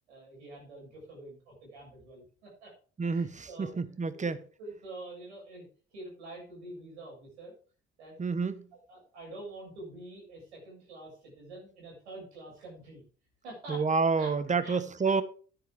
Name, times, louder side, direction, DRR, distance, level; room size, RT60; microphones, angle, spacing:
voice 1, 0.1-2.7 3.1-4.3 4.6-7.5 8.0-8.2 8.9-13.0 13.4-14.8 15.1-15.2, right 1 dB, 75° right, 7.0 m, -47 dB
voice 2, 3.0-4.4 8.2-8.7 13.7-15.2, right 4 dB, 20° right, 1.3 m, -29 dB
12.0 x 10.0 x 3.6 m
figure-of-eight pair, 50°, 34 cm